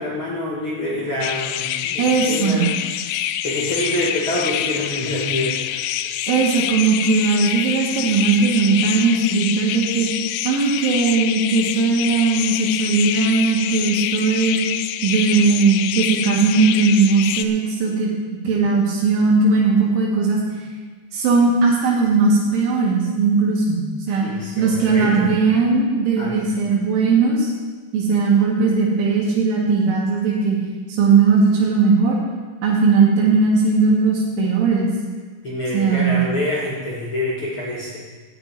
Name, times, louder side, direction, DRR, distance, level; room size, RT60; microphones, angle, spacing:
voice 1, 0.0-2.7 3.0-5.8 24.2-25.3 26.2-26.5 35.4-38.0, left 1 dB, 50° left, -5 dB, 1.6 m, -26 dB
sound 1, 1.2-17.4, left 11 dB, 85° left, 2.6 m, -26 dB
voice 2, 2.0-2.6 6.3-10.1 10.5-14.6 15.0-18.1 18.4-20.4 21.1-23.8 24.1-24.3 24.6-27.5 27.9-30.6 30.9-32.2 32.6-34.9 35.7-36.2, right 4 dB, 75° right, -5 dB, 4.4 m, -18 dB
14.0 x 5.9 x 9.2 m, 1.4 s
omnidirectional pair, 5.7 m